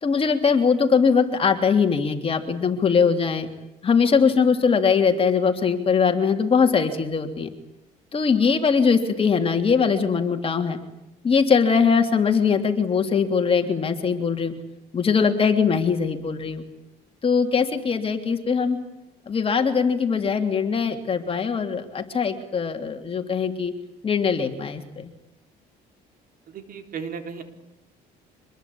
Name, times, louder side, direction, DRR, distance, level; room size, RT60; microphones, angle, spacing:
voice 1, 0.0-3.5 3.8-7.5 8.1-10.8 11.2-14.5 14.9-16.6 17.2-18.8 19.3-23.7 24.0-25.1, left 5 dB, 35° left, 5 dB, 3.3 m, -21 dB
voice 2, 26.5-27.4, right 6 dB, 60° right, 7 dB, 4.1 m, -35 dB
25.5 x 21.5 x 8.8 m, 0.91 s
cardioid pair, 110°, 17 cm